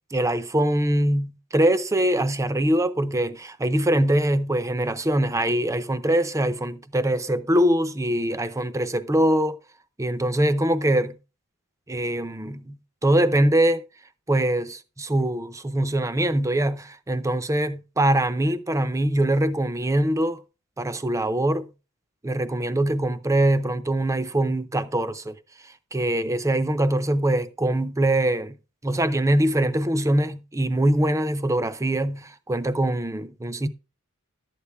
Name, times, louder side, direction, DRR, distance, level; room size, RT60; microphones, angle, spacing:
voice 1, 0.1-9.6 10.0-11.2 11.9-12.8 13.0-13.8 14.3-20.4 20.8-21.7 22.2-25.4 25.9-28.6 28.8-33.7, right 1 dB, 15° right, 0.6 m, -23 dB
12.0 x 8.3 x 3.4 m
head